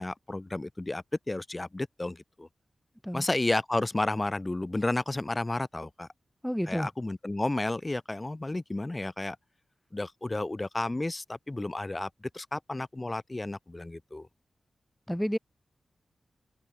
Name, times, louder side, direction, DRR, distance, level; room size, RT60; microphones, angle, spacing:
voice 1, 0.0-2.5 3.1-6.1 6.7-9.4 9.9-14.3, left 2 dB, 20° left, 2.3 m, -32 dB
voice 2, 6.4-6.9 15.1-15.4, equal, ahead, 0.6 m, -30 dB
wide cardioid pair, 140°, 0 cm